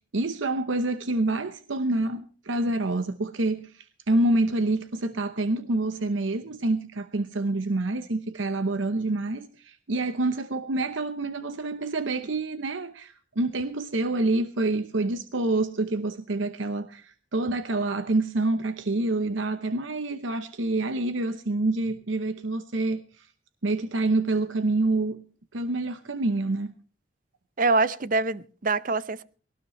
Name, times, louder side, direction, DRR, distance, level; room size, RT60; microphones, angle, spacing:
voice 1, 0.1-23.3 23.6-25.2 25.5-26.7, right 2 dB, 80° right, 0.9 m, -27 dB
voice 2, 27.6-29.2, right 3 dB, 45° right, 0.6 m, -24 dB
19.5 x 18.0 x 3.1 m
head